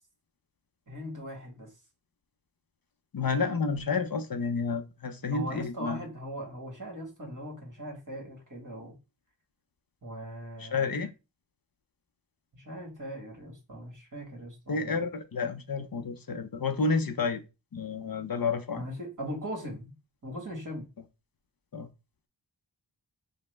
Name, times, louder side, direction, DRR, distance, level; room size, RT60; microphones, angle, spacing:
voice 1, 0.9-1.7 5.3-8.9 10.0-11.0 12.5-15.0 18.8-19.9 20.2-20.9, equal, 45° right, 1.6 m, -40 dB
voice 2, 3.1-6.0 10.6-11.1 14.7-17.4 17.7-18.8 21.7-21.9, left 4 dB, 50° left, 0.6 m, -30 dB
5.1 x 2.1 x 3.3 m
wide cardioid pair, 75°, 44 cm